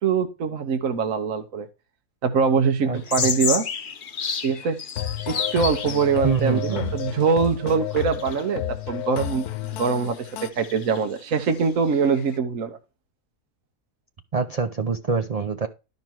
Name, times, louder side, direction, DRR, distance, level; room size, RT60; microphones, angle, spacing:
voice 1, 0.0-1.7 2.2-3.7 4.4-4.8 5.3-8.6 8.9-12.8, right 5 dB, 60° right, 1.4 m, -23 dB
voice 2, 2.8-3.3 6.2-6.9 14.3-15.7, right 5 dB, 45° right, 0.5 m, -25 dB
sound 1, 2.9-7.5 7.9-8.4 9.7-9.8 10.1-10.2 10.5-12.4, left 6 dB, 45° left, 0.8 m, -31 dB
sound 2, 5.0-10.5, left 12 dB, 90° left, 1.3 m, -32 dB
12.0 x 5.4 x 4.5 m
omnidirectional pair, 1.6 m